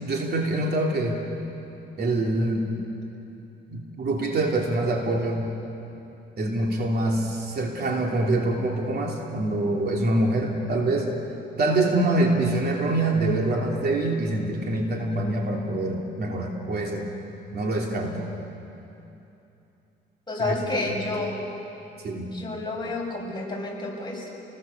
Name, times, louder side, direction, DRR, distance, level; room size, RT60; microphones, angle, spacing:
voice 1, 0.0-1.2 2.0-2.7 3.7-5.5 6.4-11.1 11.5-17.1 17.5-18.3 20.4-20.9 22.0-22.3, right 2 dB, 55° right, 0 dB, 3.2 m, -25 dB
voice 2, 20.3-21.4 22.3-24.3, left 2 dB, 20° left, -3 dB, 7.3 m, -30 dB
29.5 x 20.5 x 7.2 m, 2.9 s
cardioid pair, 90°, 20 cm